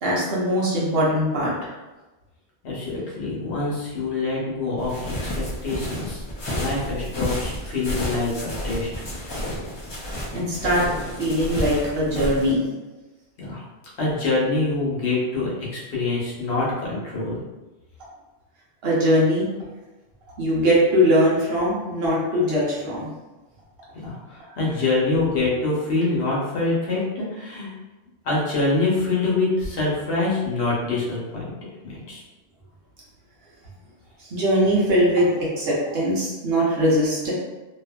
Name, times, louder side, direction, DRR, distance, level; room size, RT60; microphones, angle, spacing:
voice 1, 0.0-1.7 10.3-10.8 11.2-12.6 18.8-19.5 20.4-23.1 34.3-37.3, equal, 65° right, -6 dB, 1.0 m, -21 dB
voice 2, 2.6-8.9 13.4-13.6 14.0-17.4 23.9-27.7 28.2-31.4 31.8-32.2, left 3 dB, 70° left, -5 dB, 1.1 m, -25 dB
sound 1, 4.8-12.5, equal, 45° left, 0.3 m, -31 dB
2.7 x 2.4 x 2.2 m, 1.1 s
omnidirectional pair, 1.1 m